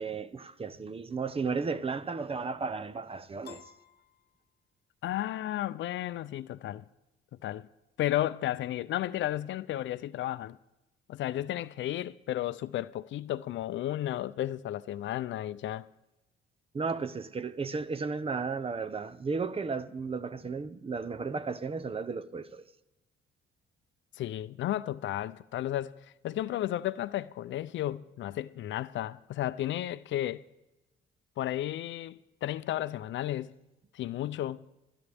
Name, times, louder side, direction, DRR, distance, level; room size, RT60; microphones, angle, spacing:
voice 1, 0.0-3.6 16.7-22.7, right 4 dB, 30° right, 0.7 m, -34 dB
Piano, 3.4-5.0, left 9 dB, 55° left, 1.1 m, -52 dB
voice 2, 5.0-6.8 7.4-7.7 8.0-10.6 11.1-15.9 24.2-25.9 26.2-30.4 31.4-33.6 33.9-34.6, left 13 dB, 70° left, 0.5 m, -33 dB
25.5 x 11.0 x 3.5 m
cardioid pair, 90°, 20 cm